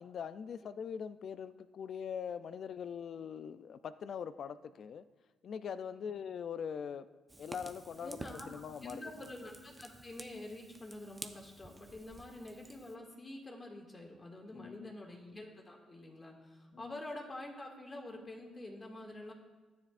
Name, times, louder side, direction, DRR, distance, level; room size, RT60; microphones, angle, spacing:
voice 1, 0.0-5.0 5.4-7.1 7.4-8.2 8.5-9.0 14.5-14.9 16.7-17.0, left 7 dB, 60° left, 13 dB, 0.4 m, -42 dB
Fire, 7.3-13.0, right 2 dB, 20° right, 0.7 m, -51 dB
voice 2, 8.0-19.3, left 1 dB, 25° left, 0 dB, 2.1 m, -47 dB
14.0 x 9.6 x 2.5 m, 1.3 s
cardioid pair, 90°, 0 cm